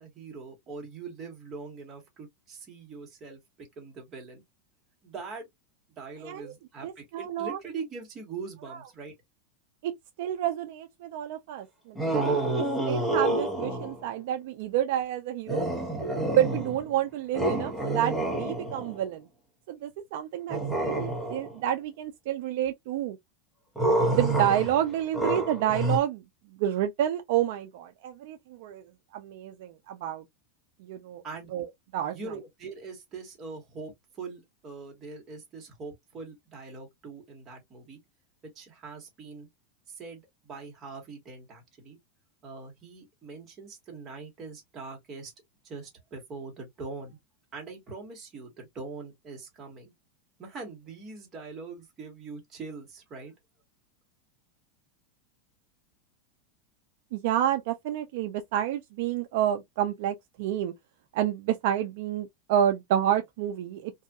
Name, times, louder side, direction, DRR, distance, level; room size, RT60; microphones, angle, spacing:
voice 1, 0.0-4.4 5.0-5.5 6.0-9.1 31.2-31.5 32.1-38.0 38.5-39.5 39.9-42.0 42.4-45.3 45.6-47.2 47.5-49.9 50.4-53.3, right 4 dB, 25° right, 1.2 m, -42 dB
voice 2, 6.8-7.6 8.7-8.8 9.8-9.9 10.2-12.4 12.9-15.6 16.3-19.3 19.7-23.2 24.1-26.2 26.6-28.8 29.1-30.2 30.8-31.2 31.5-31.7 31.9-32.3 57.1-60.7 61.1-63.9, right 11 dB, 60° right, 0.4 m, -29 dB
sound 1, 11.9-14.0 15.5-16.9 17.3-19.0 20.5-21.6 23.7-26.0, right 2 dB, ahead, 1.0 m, -28 dB
2.7 x 2.4 x 2.2 m
supercardioid pair, 155°, 0 cm